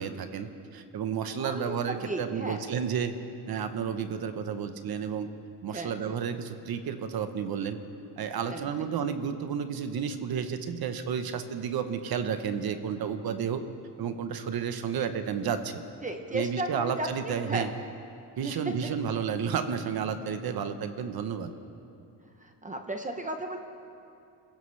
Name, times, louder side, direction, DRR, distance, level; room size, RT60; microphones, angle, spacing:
voice 1, 0.0-3.1 3.5-5.3 5.6-7.8 8.2-13.6 14.0-15.8 16.3-17.7 18.4-21.5, right 7 dB, 60° right, 9 dB, 1.0 m, -31 dB
voice 2, 1.3-2.6 5.7-5.9 8.5-8.7 16.0-17.7 18.4-18.5 22.4-23.6, right 1 dB, 20° right, 4 dB, 0.7 m, -34 dB
27.5 x 15.5 x 3.3 m, 2.6 s
wide cardioid pair, 180°, 42 cm